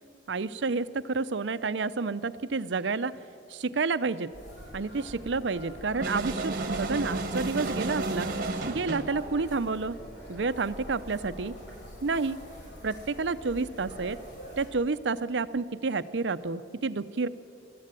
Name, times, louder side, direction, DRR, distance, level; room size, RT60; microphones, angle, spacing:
voice 1, 0.3-3.1 3.5-4.3 4.7-8.3 8.7-10.0 10.3-11.5 12.0-12.4 12.8-14.2 14.6-17.3, right 4 dB, 80° right, 14 dB, 0.6 m, -29 dB
sound 1, 4.3-14.7, equal, 90° left, 6.5 m, -45 dB
sound 2, 6.0-9.2, right 2 dB, 50° right, 1.5 m, -32 dB
23.0 x 13.5 x 9.0 m, 2.7 s
head